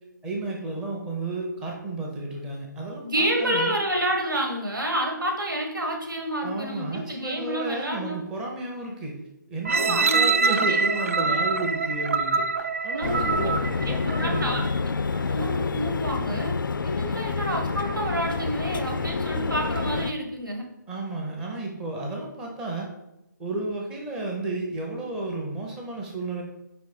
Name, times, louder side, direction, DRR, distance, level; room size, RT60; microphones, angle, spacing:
voice 1, 0.2-3.7 6.4-9.1 9.5-12.5 12.8-14.6 17.0-17.2 20.9-22.9 23.4-26.4, right 2 dB, 5° right, -1 dB, 0.6 m, -32 dB
voice 2, 3.0-8.2 9.7-11.3 12.9-13.4 13.8-14.7 15.3-20.7, right 1 dB, 90° right, 1 dB, 1.8 m, -29 dB
sound 1, 9.6-14.6 15.2-15.3, right 4 dB, 45° right, 0.4 m, -25 dB
sound 2, 13.0-20.1, left 4 dB, 85° left, 0.4 m, -28 dB
5.2 x 4.0 x 4.9 m, 0.91 s
hypercardioid pair, 165°, 11 cm